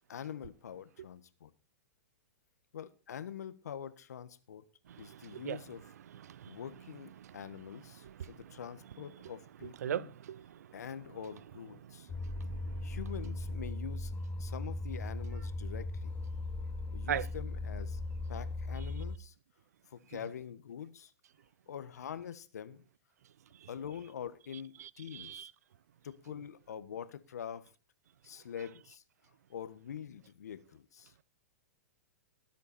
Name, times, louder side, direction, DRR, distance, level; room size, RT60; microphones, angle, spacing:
voice 1, 0.1-1.5 2.7-4.6 5.0-5.8 6.4-10.1 10.7-12.1 12.8-14.1 14.4-16.1 16.9-18.0 18.3-19.3 19.9-21.1 21.7-22.8 23.7-25.5 26.0-27.7 28.2-29.0 29.5-31.1, left 8 dB, 80° left, 1.4 m, -45 dB
voice 2, 4.9-5.6 6.1-6.6 7.2-7.4 8.0-8.4 9.8-10.6 12.1-12.8 17.1-17.3 24.8-25.5, right 10 dB, 75° right, 0.6 m, -40 dB
sound 1, 12.1-19.2, left 2 dB, 15° left, 0.9 m, -38 dB
19.5 x 8.2 x 4.3 m
hypercardioid pair, 125°, 9 cm